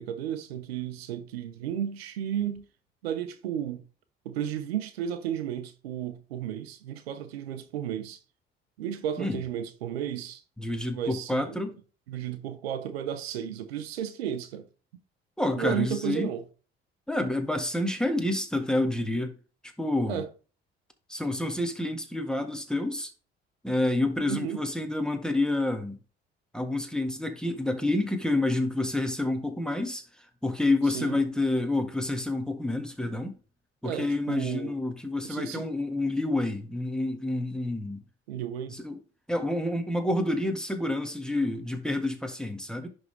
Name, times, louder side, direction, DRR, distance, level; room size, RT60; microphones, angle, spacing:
voice 1, 0.0-2.6 3.0-3.8 4.2-8.2 8.8-10.4 10.9-11.6 12.1-14.7 15.6-16.4 20.1-20.3 24.3-24.6 30.9-31.2 33.8-34.7 35.2-35.7 38.3-38.8, right 9 dB, 85° right, 0.8 m, -33 dB
voice 2, 10.6-11.8 15.4-16.3 17.1-19.3 19.6-20.2 21.1-23.1 23.6-26.0 26.5-30.0 30.4-33.3 33.8-38.0 38.7-39.0 39.3-42.9, left 2 dB, ahead, 1.6 m, -28 dB
10.5 x 3.7 x 3.3 m
hypercardioid pair, 55°, 30 cm